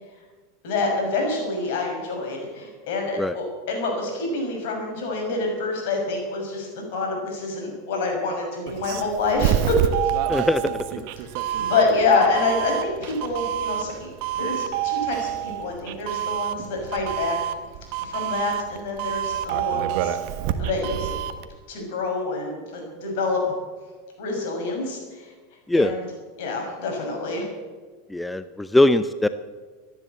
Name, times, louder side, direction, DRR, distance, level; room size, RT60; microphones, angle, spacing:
voice 1, 0.6-9.8 10.0-10.1 11.6-17.3 18.0-20.2 20.6-21.1 21.7-23.4 24.2-25.3 25.7-26.1 26.4-27.5, left 3 dB, 65° left, 1 dB, 6.5 m, -27 dB
Doorbell, 8.7-21.5, right 10 dB, 60° right, 1.3 m, -27 dB
voice 2, 10.3-11.0 25.7-25.9 28.1-29.3, left 1 dB, 5° left, 12 dB, 0.6 m, -21 dB
14.5 x 10.5 x 8.2 m, 1.4 s
hypercardioid pair, 100°, 0 cm